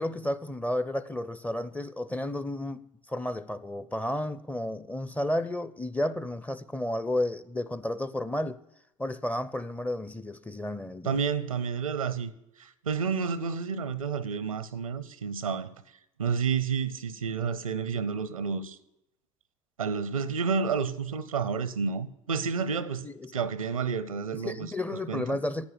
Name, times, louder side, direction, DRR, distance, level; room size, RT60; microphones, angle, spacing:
voice 1, 0.0-8.6 9.0-11.2 23.0-23.3 24.3-25.7, left 1 dB, 10° left, 0.7 m, -32 dB
voice 2, 11.0-12.3 12.6-15.7 16.2-18.8 19.8-23.1 23.3-24.7 25.1-25.4, right 6 dB, 90° right, 0.7 m, -30 dB
11.5 x 8.8 x 8.3 m
hypercardioid pair, 75°, 17 cm